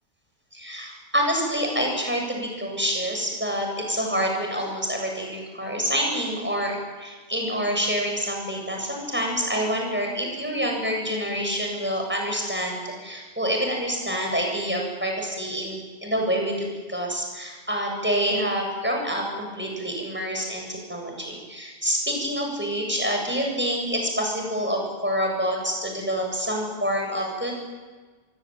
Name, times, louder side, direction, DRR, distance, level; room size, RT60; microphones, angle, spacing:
voice 1, 0.5-27.5, equal, 10° right, 1 dB, 7.9 m, -27 dB
27.5 x 22.5 x 9.2 m, 1.4 s
omnidirectional pair, 1.3 m